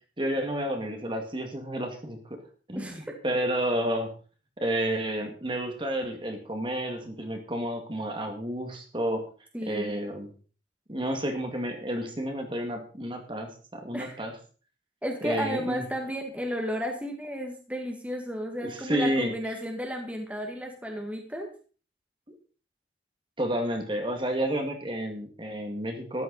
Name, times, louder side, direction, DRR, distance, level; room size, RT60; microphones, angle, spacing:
voice 1, 0.2-2.4 2.7-4.1 4.6-9.3 9.7-10.3 10.9-14.3 15.2-15.8 18.6-19.3 23.4-26.2, right 1 dB, 25° right, 4 dB, 2.1 m, -30 dB
voice 2, 2.7-3.1 9.5-9.9 13.9-14.2 15.0-21.5, equal, 10° right, 2 dB, 1.9 m, -33 dB
13.5 x 11.5 x 4.0 m, 0.38 s
head